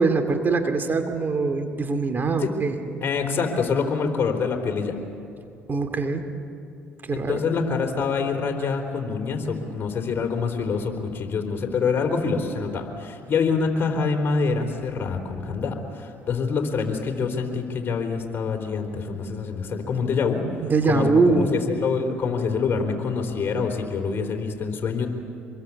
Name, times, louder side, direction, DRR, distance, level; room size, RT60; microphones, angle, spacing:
voice 1, 0.0-2.8 5.7-6.2 7.1-7.4 20.6-21.6, right 4 dB, 35° right, 6 dB, 2.4 m, -22 dB
voice 2, 3.0-4.9 7.1-20.4 20.9-25.1, left 5 dB, 40° left, 2 dB, 3.9 m, -26 dB
25.5 x 22.0 x 8.5 m, 2.6 s
hypercardioid pair, 60°, 5 cm